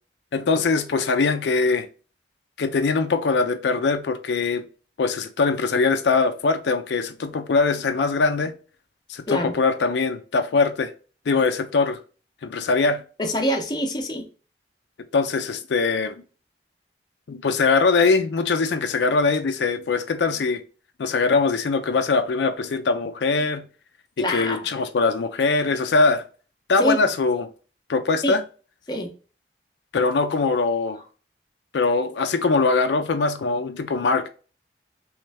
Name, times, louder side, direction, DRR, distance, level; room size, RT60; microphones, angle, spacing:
voice 1, 0.3-1.9 2.6-4.7 5.0-8.5 9.1-10.9 11.3-12.0 12.4-13.0 15.1-16.2 17.3-20.6 21.0-23.6 24.3-26.2 26.7-27.5 27.9-28.4 29.9-31.0 31.7-34.3, left 4 dB, 80° left, 0.4 m, -22 dB
voice 2, 13.2-14.3 24.2-24.7 26.8-27.0 28.2-28.4 28.9-29.1, equal, 25° left, 0.6 m, -25 dB
3.3 x 3.1 x 3.3 m
head